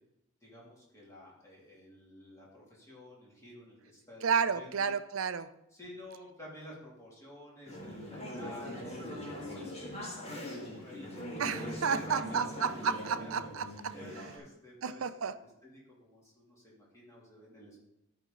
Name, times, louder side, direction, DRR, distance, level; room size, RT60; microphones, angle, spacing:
voice 1, 0.4-4.9 5.7-13.5 13.9-17.8, left 1 dB, 15° left, -5 dB, 2.6 m, -51 dB
voice 2, 4.2-5.5 11.4-13.9 14.8-15.3, right 6 dB, 80° right, 12 dB, 0.5 m, -31 dB
Conversation / Chatter, 7.7-14.4, equal, 30° left, 1.7 m, -41 dB
13.0 x 5.2 x 3.8 m, 0.86 s
head